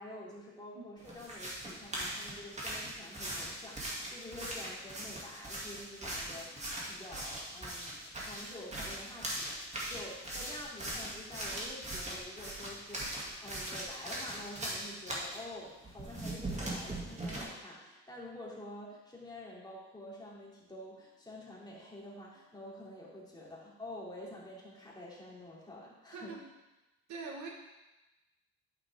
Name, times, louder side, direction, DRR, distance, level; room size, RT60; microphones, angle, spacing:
voice 1, 0.0-26.4, left 1 dB, 15° left, -5 dB, 2.9 m, -48 dB
sound 1, 1.0-15.4 15.8-17.4, right 1 dB, 20° right, 2.4 m, -40 dB
voice 2, 26.1-26.5 27.1-27.5, right 4 dB, 70° right, 1 dB, 1.5 m, -43 dB
8.6 x 7.7 x 3.6 m, 1.0 s
cardioid pair, 90°, 30 cm